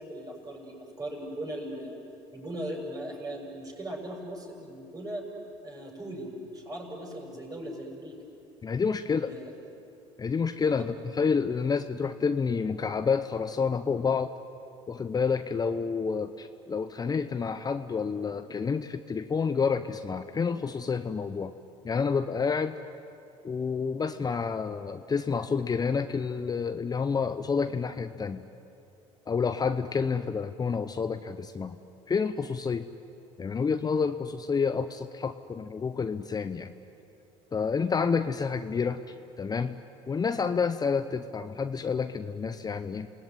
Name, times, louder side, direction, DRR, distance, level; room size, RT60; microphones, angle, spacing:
voice 1, 0.0-2.0 2.3-5.3 5.6-8.2 9.0-9.5 10.8-10.9, right 1 dB, 25° right, 0 dB, 7.5 m, -39 dB
voice 2, 8.6-9.3 10.2-14.3 14.9-21.5 21.8-22.8 23.4-28.5 29.3-31.8 32.1-32.9 33.4-36.7 37.5-39.7 40.1-43.1, left 5 dB, 25° left, 10 dB, 0.9 m, -29 dB
28.0 x 19.0 x 9.5 m, 2.8 s
hypercardioid pair, 75°, 14 cm